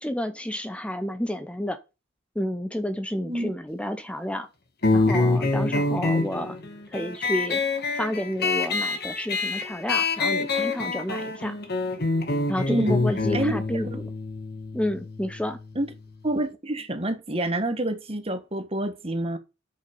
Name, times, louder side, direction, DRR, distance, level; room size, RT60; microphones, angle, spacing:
voice 1, 0.0-1.8 2.4-4.5 4.9-6.6 6.9-7.6 7.9-11.6 12.5-13.9 14.7-15.6, left 1 dB, 5° left, 0.7 m, -30 dB
sound 1, 4.8-15.9, left 3 dB, 55° left, 1.7 m, -26 dB
voice 2, 12.7-13.0 13.3-13.5 13.9-14.0 15.7-15.9 16.2-19.4, right 1 dB, 30° right, 1.6 m, -27 dB
9.3 x 6.7 x 5.4 m
head